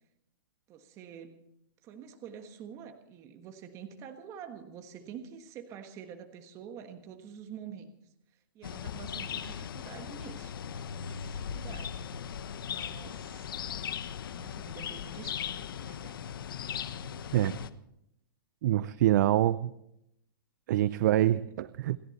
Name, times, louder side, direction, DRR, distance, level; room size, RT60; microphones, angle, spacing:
voice 1, 0.7-1.5 1.8-7.9 8.5-12.0 12.7-13.5 14.3-16.2 21.3-21.4, right 8 dB, 25° right, 6 dB, 1.5 m, -47 dB
sound 1, 8.6-17.7, left 8 dB, 75° left, 1.1 m, -38 dB
voice 2, 18.6-19.7 20.7-22.0, right 13 dB, 55° right, 16 dB, 0.5 m, -25 dB
28.5 x 11.0 x 4.2 m, 0.78 s
hypercardioid pair, 150°, 12 cm